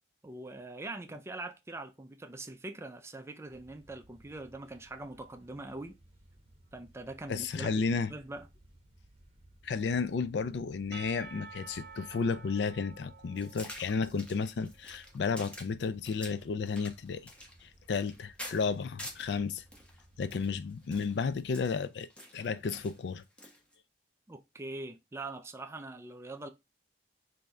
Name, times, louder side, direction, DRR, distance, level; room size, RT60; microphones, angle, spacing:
voice 1, 0.2-6.0 6.7-7.8 8.1-8.5 24.3-26.5, right 2 dB, 15° right, 0.4 m, -43 dB
sound 1, 3.5-21.6, right 1 dB, 35° right, 0.8 m, -60 dB
voice 2, 7.3-8.1 9.6-17.3 17.6-19.6 20.2-23.2, left 5 dB, 75° left, 0.4 m, -33 dB
Percussion / Church bell, 10.9-14.9, right 5 dB, 85° right, 0.6 m, -50 dB
sound 2, 13.4-19.3 19.7-23.7, left 1 dB, 5° left, 0.8 m, -48 dB
3.2 x 2.7 x 3.4 m
head